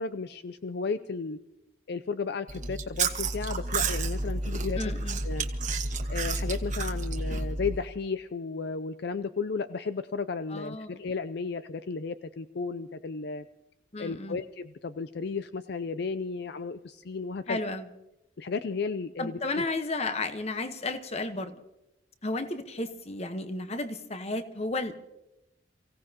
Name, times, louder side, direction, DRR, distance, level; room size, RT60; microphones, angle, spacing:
voice 1, 0.0-1.4 1.9-4.8 5.2-5.5 6.1-13.5 14.0-17.6 18.4-19.6, left 4 dB, 60° left, 11 dB, 0.5 m, -34 dB
Chewing mastication, 2.5-7.8, right 3 dB, 40° right, 1.3 m, -30 dB
voice 2, 4.8-5.2 10.5-11.0 13.9-14.4 17.5-17.9 19.2-21.6 22.2-24.9, left 2 dB, 35° left, 9 dB, 1.1 m, -33 dB
29.0 x 16.5 x 2.9 m, 0.94 s
head